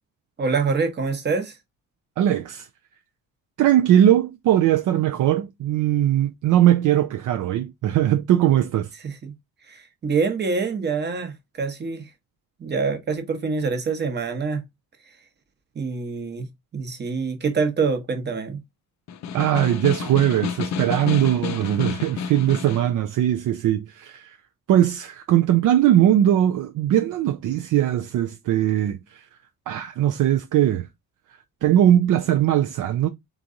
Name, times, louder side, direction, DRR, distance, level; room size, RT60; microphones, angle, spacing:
voice 1, 0.4-1.6 9.0-9.3 9.7-12.1 12.6-14.6 15.7-16.5 16.7-18.6, right 4 dB, 30° right, 1.0 m, -25 dB
voice 2, 2.2-2.7 3.6-8.9 19.3-24.4 24.7-29.3 29.7-30.9 31.6-33.1, right 11 dB, 60° right, 0.5 m, -20 dB
Snare drum, 19.1-22.9, left 7 dB, 50° left, 0.5 m, -30 dB
3.7 x 3.0 x 3.9 m
cardioid pair, 145°, 36 cm